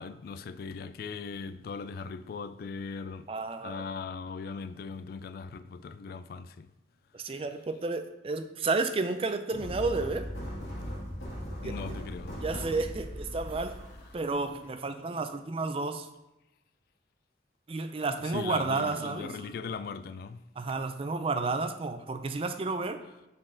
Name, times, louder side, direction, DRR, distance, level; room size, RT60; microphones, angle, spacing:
voice 1, 0.0-3.3 3.6-6.7 11.6-12.7 18.2-20.4, left 5 dB, 55° left, 0.3 m, -39 dB
voice 2, 3.3-3.8 7.1-10.3 11.6-11.9 12.4-13.7 14.1-16.1 17.7-19.3 20.6-23.0, right 3 dB, 30° right, 0.4 m, -31 dB
sound 1, 9.5-14.7, equal, 85° left, 2.3 m, -39 dB
7.5 x 4.4 x 3.8 m
head